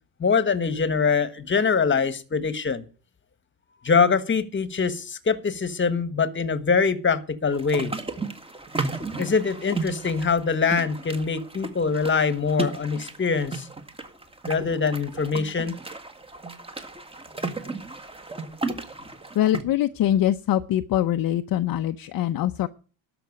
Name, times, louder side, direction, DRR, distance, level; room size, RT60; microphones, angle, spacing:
voice 1, 0.2-2.8 3.8-7.9 9.2-13.7 14.5-15.7, left 5 dB, 25° left, 14 dB, 1.4 m, -23 dB
sound 1, 7.5-19.6, right 3 dB, 10° right, 1.7 m, -34 dB
voice 2, 19.3-22.7, left 12 dB, 45° left, 9 dB, 0.7 m, -23 dB
12.5 x 6.1 x 9.5 m, 0.38 s
cardioid pair, 105°, 47 cm